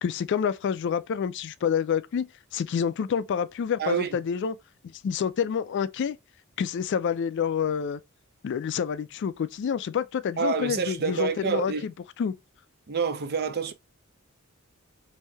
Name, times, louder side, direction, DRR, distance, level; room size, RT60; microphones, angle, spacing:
voice 1, 0.0-4.6 4.9-6.2 6.6-8.0 8.4-11.9 12.2-12.3, left 7 dB, 55° left, 0.3 m, -28 dB
voice 2, 3.8-4.2 10.4-11.8 12.9-13.7, right 5 dB, 45° right, 0.5 m, -27 dB
3.2 x 2.7 x 3.3 m
head